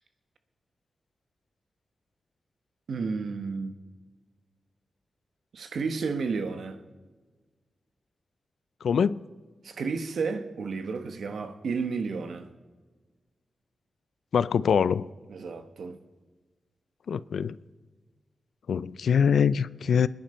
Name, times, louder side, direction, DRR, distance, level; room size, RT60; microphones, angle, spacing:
voice 1, 2.9-3.8 5.5-6.8 9.6-12.5 15.3-16.0, right 4 dB, 75° right, 1.2 m, -32 dB
voice 2, 8.8-9.2 14.3-15.1 17.1-17.6 18.7-20.1, left 7 dB, 85° left, 0.4 m, -24 dB
26.0 x 10.5 x 4.4 m
wide cardioid pair, 130°, 0 cm